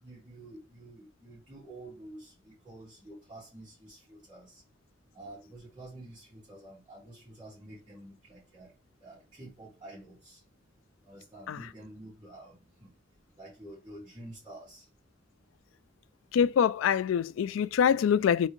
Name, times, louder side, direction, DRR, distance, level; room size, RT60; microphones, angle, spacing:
voice 1, 0.0-4.6 5.1-8.7 9.0-10.4 11.0-12.9 13.4-14.9, right 1 dB, 25° right, 2.2 m, -49 dB
voice 2, 16.3-18.5, left 8 dB, 90° left, 0.3 m, -24 dB
4.1 x 3.6 x 3.1 m
head